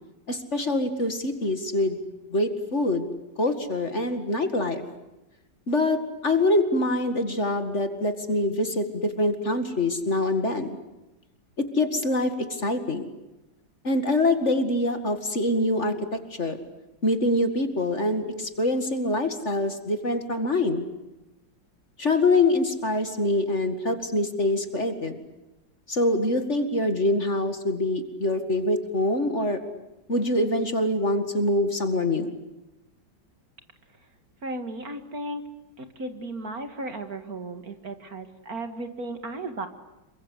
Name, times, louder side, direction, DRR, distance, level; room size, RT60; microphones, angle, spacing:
voice 1, 0.3-2.0 2.3-3.1 3.4-4.8 5.7-10.8 11.6-13.1 13.8-16.6 17.0-20.9 22.0-25.2 25.9-29.6 30.1-32.4, left 2 dB, 35° left, 8 dB, 2.3 m, -25 dB
voice 2, 34.4-35.4 35.8-39.7, right 2 dB, 50° right, 8 dB, 2.4 m, -35 dB
28.0 x 24.0 x 8.3 m, 0.99 s
omnidirectional pair, 2.1 m